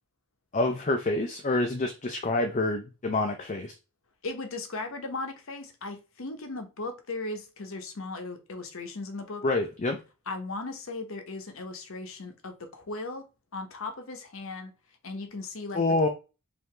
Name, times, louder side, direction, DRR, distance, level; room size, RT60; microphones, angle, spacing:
voice 1, 0.5-3.7 9.4-10.0 15.7-16.1, left 2 dB, 35° left, 0.5 m, -27 dB
voice 2, 4.2-9.4 10.3-13.3 13.5-14.7 15.0-16.1, left 3 dB, 60° left, 0.9 m, -37 dB
4.7 x 2.7 x 3.2 m
head